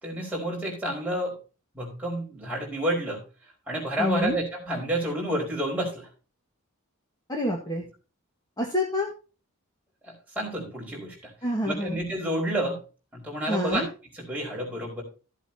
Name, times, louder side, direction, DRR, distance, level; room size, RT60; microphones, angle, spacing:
voice 1, 0.0-1.4 1.7-3.2 3.7-6.1 10.0-11.3 11.6-12.8 13.1-13.9 14.1-15.0, right 1 dB, 5° right, -3 dB, 4.7 m, -29 dB
voice 2, 4.0-4.4 7.3-7.8 8.6-9.1 11.4-12.0 13.5-13.9, left 1 dB, 20° left, 0 dB, 1.6 m, -27 dB
14.5 x 8.2 x 2.8 m, 0.34 s
head